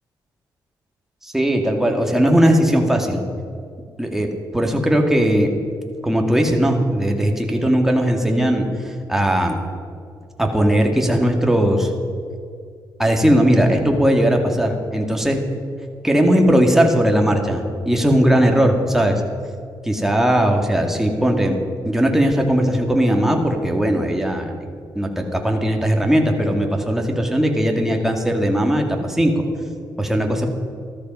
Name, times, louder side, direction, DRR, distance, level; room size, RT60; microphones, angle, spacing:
voice 1, 1.2-3.2 4.0-5.5 6.0-9.6 10.4-11.9 13.0-15.4 16.0-19.2 19.8-21.6 21.8-24.5 25.0-29.4 30.0-30.5, equal, 5° right, 2 dB, 2.1 m, -18 dB
13.5 x 13.5 x 5.5 m, 2.3 s
cardioid pair, 85°, 8 cm